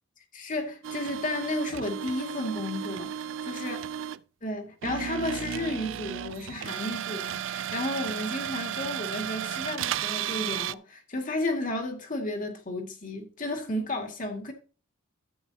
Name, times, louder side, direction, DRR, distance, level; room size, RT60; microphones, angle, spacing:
voice 1, 0.3-3.1 3.4-3.8 4.4-14.5, left 1 dB, 45° left, 2.2 m, -33 dB
sound 1, 0.8-4.2 4.8-10.7, right 10 dB, 75° right, 0.4 m, -34 dB
13.0 x 8.3 x 2.8 m
head